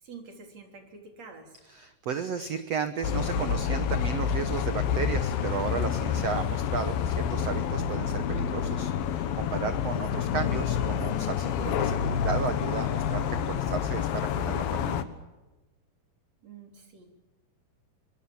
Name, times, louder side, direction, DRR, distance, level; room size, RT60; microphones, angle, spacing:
voice 1, 0.0-1.6 16.4-17.1, right 4 dB, 45° right, 4 dB, 4.4 m, -47 dB
voice 2, 1.7-15.0, right 7 dB, 75° right, 10 dB, 1.4 m, -34 dB
sound 1, 3.0-15.0, left 8 dB, 70° left, 2.9 m, -28 dB
25.0 x 23.0 x 7.2 m, 1.1 s
omnidirectional pair, 4.6 m